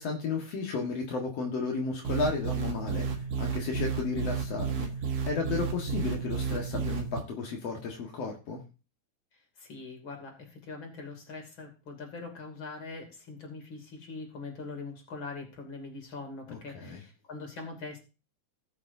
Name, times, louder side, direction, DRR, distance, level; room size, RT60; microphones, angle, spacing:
voice 1, 0.0-3.1 3.4-4.9 5.3-8.6 16.5-17.0, left 4 dB, 70° left, 0 dB, 1.5 m, -33 dB
sound 1, 2.0-7.2, right 6 dB, 70° right, 1.6 m, -32 dB
voice 2, 9.6-18.0, left 3 dB, 30° left, 2 dB, 2.8 m, -42 dB
19.0 x 7.1 x 2.7 m, 0.31 s
omnidirectional pair, 5.4 m